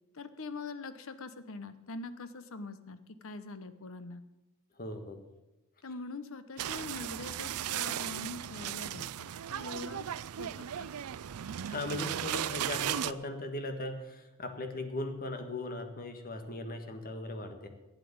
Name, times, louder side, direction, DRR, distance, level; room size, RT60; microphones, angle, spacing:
voice 1, 0.1-4.2 5.8-10.1 10.4-11.0, left 3 dB, 65° left, 11 dB, 1.0 m, -43 dB
voice 2, 4.8-5.2 11.6-17.7, left 2 dB, 40° left, 6 dB, 1.6 m, -38 dB
sound 1, 6.6-13.1, right 10 dB, 75° right, 0.4 m, -36 dB
12.0 x 8.3 x 8.7 m, 1.0 s
head